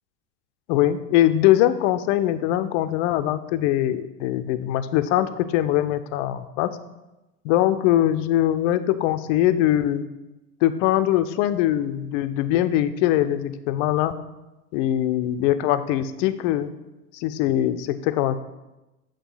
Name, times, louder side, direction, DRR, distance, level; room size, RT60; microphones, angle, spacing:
voice 1, 0.7-6.7 7.4-10.0 10.6-14.1 14.7-16.7 17.1-18.4, left 13 dB, 50° left, 11 dB, 0.6 m, -22 dB
7.7 x 3.3 x 5.6 m, 1.0 s
hypercardioid pair, 80°, 47 cm